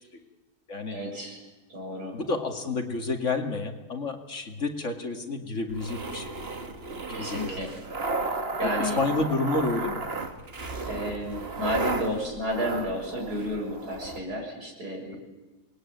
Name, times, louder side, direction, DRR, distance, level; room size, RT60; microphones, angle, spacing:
voice 1, 0.9-1.4 1.7-2.1 7.1-7.7 8.6-9.0 10.8-15.2, equal, 85° right, 1 dB, 7.1 m, -32 dB
voice 2, 2.1-6.3 7.1-7.7 8.6-10.0, left 3 dB, 50° left, 4 dB, 2.5 m, -30 dB
sound 1, 5.7-14.2, right 3 dB, 40° right, 1.9 m, -34 dB
26.5 x 20.5 x 9.2 m, 1.2 s
omnidirectional pair, 1.6 m